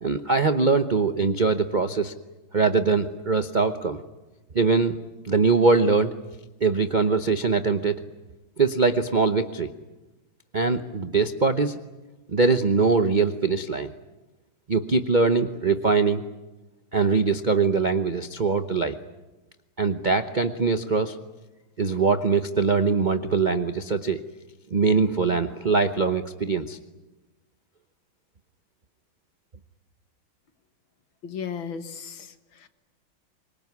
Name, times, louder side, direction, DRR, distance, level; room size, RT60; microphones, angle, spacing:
voice 1, 0.0-2.1 2.5-4.0 4.5-5.0 5.2-6.1 6.6-8.0 8.6-9.7 10.5-11.8 12.3-13.9 14.7-16.2 16.9-19.0 19.8-21.2 21.8-24.2 24.7-26.8, right 4 dB, 45° right, 9 dB, 0.6 m, -22 dB
voice 2, 31.2-32.7, left 6 dB, 70° left, 9 dB, 2.2 m, -36 dB
25.0 x 22.5 x 9.6 m, 1.1 s
omnidirectional pair, 2.3 m